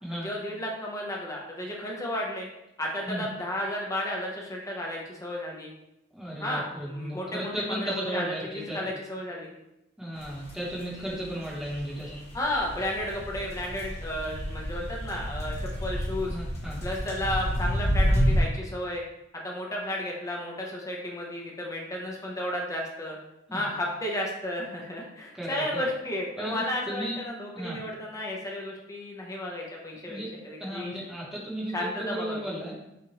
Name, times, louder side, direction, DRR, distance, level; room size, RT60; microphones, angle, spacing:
voice 1, 0.1-2.5 2.8-5.7 6.4-9.5 12.3-16.4 16.8-19.0 19.4-23.2 23.5-30.9 31.7-32.5, left 1 dB, 15° left, -2 dB, 0.7 m, -33 dB
voice 2, 6.1-8.8 10.0-12.2 16.3-16.8 23.5-23.7 25.4-25.7 26.4-27.2 27.5-27.8 30.1-30.3 30.6-32.8, right 1 dB, 5° right, -6 dB, 1.1 m, -35 dB
sound 1, 10.2-18.4, equal, 35° left, 1.2 m, -29 dB
5.9 x 2.5 x 3.0 m, 0.88 s
head